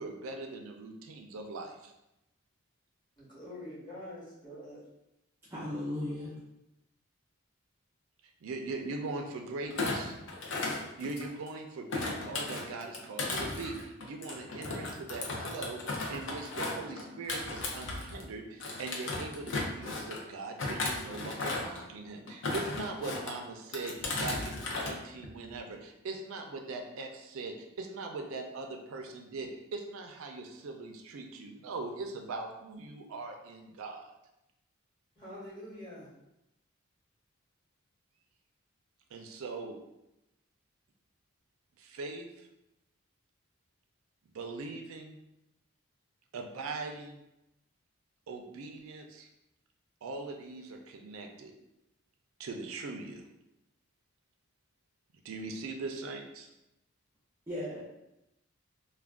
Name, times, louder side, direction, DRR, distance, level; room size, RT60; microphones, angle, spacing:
voice 1, 0.0-1.9 8.4-10.1 10.8-23.9 24.2-34.2 39.1-39.8 41.8-42.5 44.3-45.2 46.3-47.2 48.3-49.3 50.0-51.5 52.4-53.2 55.2-56.5, right 3 dB, 75° right, 3 dB, 0.4 m, -41 dB
voice 2, 3.2-4.8 35.2-36.1, left 1 dB, 20° left, -9 dB, 1.0 m, -45 dB
voice 3, 5.5-6.3 57.5-57.8, left 1 dB, 10° right, -9 dB, 0.4 m, -36 dB
Thump thud, 9.7-11.5 11.9-18.3 18.6-20.2 20.6-21.8 22.3-23.3 23.7-24.9 25.2-25.6, left 2 dB, 60° left, 0.5 m, -35 dB
2.3 x 2.2 x 3.5 m, 0.88 s
head